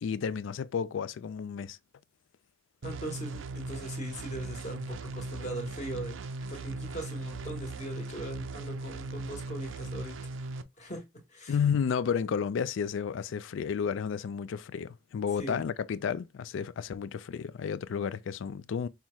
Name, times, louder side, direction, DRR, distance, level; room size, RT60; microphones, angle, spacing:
voice 1, 0.0-1.8 11.5-18.9, left 7 dB, 70° left, 0.3 m, -32 dB
voice 2, 2.8-6.2 6.5-10.2 10.8-11.0 11.3-11.6 15.4-15.6, right 1 dB, 35° left, 1.3 m, -40 dB
sound 1, 2.8-10.6, right 3 dB, 75° right, 0.5 m, -38 dB
5.6 x 2.3 x 3.0 m
head